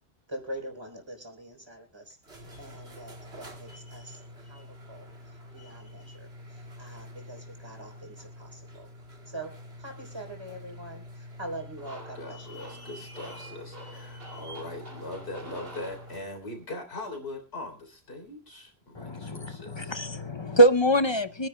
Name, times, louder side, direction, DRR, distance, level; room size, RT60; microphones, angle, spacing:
voice 1, 0.3-4.2 4.5-5.1 5.5-8.9 9.3-9.5 9.8-12.6, right 1 dB, 25° right, 2 dB, 3.6 m, -43 dB
sound 1, 2.1-16.3, left 1 dB, 80° right, 2.5 m, -46 dB
sound 2, 11.8-16.6, equal, 65° right, 2.6 m, -48 dB
voice 2, 12.1-20.0, left 2 dB, 80° left, 3 dB, 3.7 m, -41 dB
voice 3, 18.9-21.5, right 1 dB, 35° left, 12 dB, 0.6 m, -24 dB
24.5 x 10.5 x 2.2 m, 0.31 s
omnidirectional pair, 1.1 m